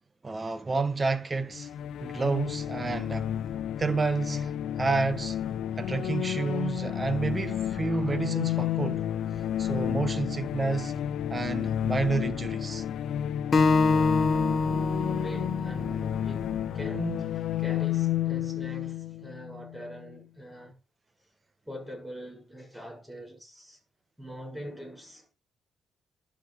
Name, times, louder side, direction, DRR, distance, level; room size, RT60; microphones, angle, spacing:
voice 1, 0.2-1.7 2.0-3.3 3.8-4.5 4.8-5.4 5.8-9.0 9.6-10.9 11.3-12.8, right 4 dB, 30° right, 1.5 m, -29 dB
sound 1, 1.5-20.2, left 11 dB, 70° left, 0.7 m, -31 dB
Acoustic guitar, 13.5-16.8, left 4 dB, 45° left, 1.3 m, -25 dB
voice 2, 14.8-20.8 21.6-23.8 24.2-25.3, right 1 dB, 5° right, 7.6 m, -42 dB
12.0 x 6.4 x 3.6 m
supercardioid pair, 60°, 0 cm